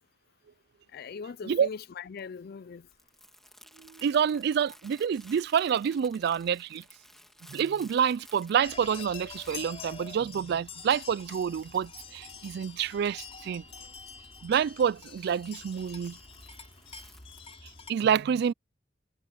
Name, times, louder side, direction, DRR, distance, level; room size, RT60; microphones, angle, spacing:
voice 1, 0.9-2.9 13.8-13.9, left 5 dB, 55° left, 0.4 m, -41 dB
Crumpling crinkling, 1.2-17.6, equal, ahead, 2.4 m, -57 dB
voice 2, 3.8-6.8 7.5-13.6 14.4-16.2 17.9-18.5, right 7 dB, 60° right, 0.3 m, -28 dB
sound 1, 8.6-17.9, left 5 dB, 35° left, 3.4 m, -46 dB
head